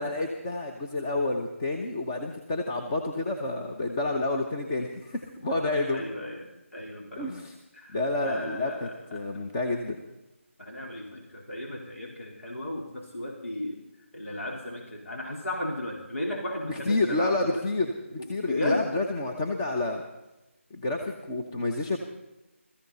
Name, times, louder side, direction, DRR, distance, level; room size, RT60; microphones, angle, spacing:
voice 1, 0.0-6.0 7.2-7.5 7.9-10.0 16.7-20.0 20.7-22.0, left 2 dB, 20° left, 2 dB, 1.0 m, -29 dB
voice 2, 5.9-7.3 7.7-9.2 10.6-13.8 14.1-17.6 18.2-18.9, left 1 dB, 75° left, -1 dB, 3.9 m, -35 dB
21.0 x 14.5 x 4.1 m, 1.0 s
figure-of-eight pair, 160°, 7 cm